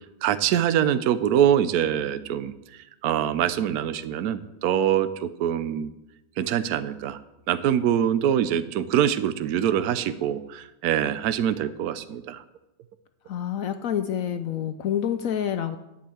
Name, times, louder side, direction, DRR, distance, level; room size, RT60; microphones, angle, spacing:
voice 1, 0.2-2.5 3.0-5.9 6.4-7.2 7.5-12.4, right 10 dB, 65° right, 13 dB, 1.0 m, -24 dB
voice 2, 13.3-15.8, left 9 dB, 75° left, 9 dB, 0.7 m, -27 dB
10.5 x 5.6 x 8.4 m, 0.93 s
omnidirectional pair, 2.0 m